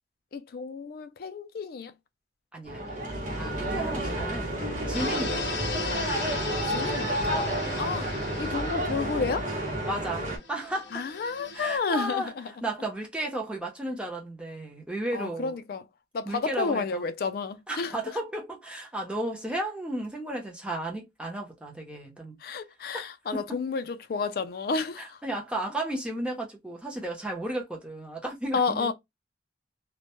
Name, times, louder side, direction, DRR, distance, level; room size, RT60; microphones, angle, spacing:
voice 1, 0.3-1.9 6.6-7.5 7.8-8.1 8.4-9.5 10.9-12.5 15.1-15.9 16.1-18.2 22.4-25.2 28.5-28.9, left 4 dB, 55° left, 0.3 m, -31 dB
voice 2, 2.5-2.9 3.4-4.6 4.9-5.6 7.7-8.0 9.9-10.9 11.5-12.3 12.6-15.5 16.3-17.1 17.7-22.3 23.3-23.6 25.0-28.9, right 1 dB, 5° right, 0.6 m, -34 dB
sound 1, 2.7-10.4, right 1 dB, 45° right, 0.8 m, -30 dB
sound 2, 4.9-11.8, left 3 dB, 80° left, 0.7 m, -37 dB
2.1 x 2.1 x 2.9 m
head